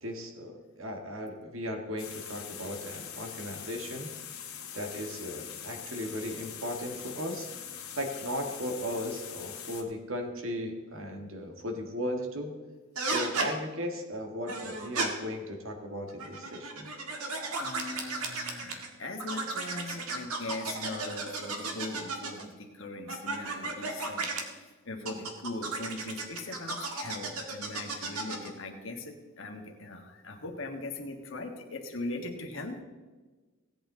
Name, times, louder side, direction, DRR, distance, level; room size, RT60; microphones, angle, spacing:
voice 1, 0.0-4.1 4.7-7.5 8.0-12.6 13.0-16.9, equal, 65° right, 3 dB, 1.8 m, -36 dB
sound 1, 2.0-9.8, left 8 dB, 80° left, 1.9 m, -43 dB
Groan Toy - Quick Random, 13.0-13.5 14.5-15.1 16.1-18.9 19.2-22.5 23.1-24.4 25.1-28.5, right 3 dB, 85° right, 1.8 m, -34 dB
voice 2, 17.6-32.8, left 2 dB, 60° left, 2 dB, 1.6 m, -40 dB
17.0 x 8.5 x 3.8 m, 1.3 s
head